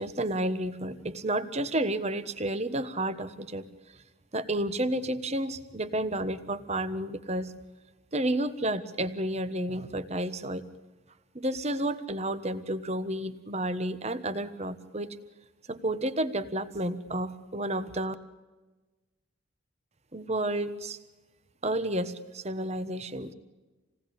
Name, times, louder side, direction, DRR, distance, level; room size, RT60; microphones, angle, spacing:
voice 1, 0.0-3.7 4.3-7.5 8.1-10.6 11.3-15.1 15.7-18.1 20.1-21.0 21.6-23.3, right 1 dB, 30° right, 12 dB, 1.3 m, -31 dB
28.0 x 18.5 x 8.6 m, 1.2 s
head